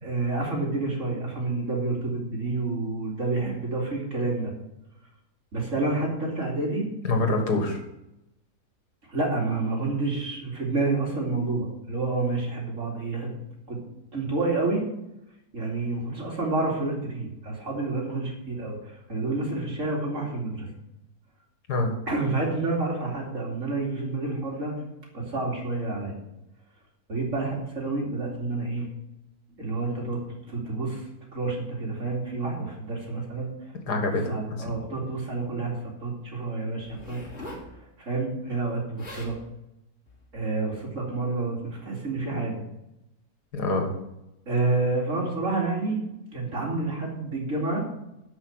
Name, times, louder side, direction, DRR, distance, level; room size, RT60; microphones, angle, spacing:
voice 1, 0.0-4.5 5.5-6.9 9.1-13.3 13.7-13.8 14.1-14.9 15.5-20.7 22.1-24.7 25.1-26.2 27.1-28.9 29.6-30.2 30.5-33.7 34.3-37.2 37.7-39.3 40.3-42.6 44.5-46.0 46.3-47.8, right 3 dB, 50° right, -2 dB, 3.0 m, -29 dB
voice 2, 7.0-7.8 21.7-21.9 33.9-34.7 43.5-43.9, left 2 dB, 90° left, 3 dB, 2.3 m, -26 dB
Zipper (clothing), 36.8-37.7 38.7-38.8 39.0-39.4 40.1-40.3, left 1 dB, 40° left, 3.3 m, -41 dB
11.5 x 5.8 x 6.4 m, 0.89 s
omnidirectional pair, 1.7 m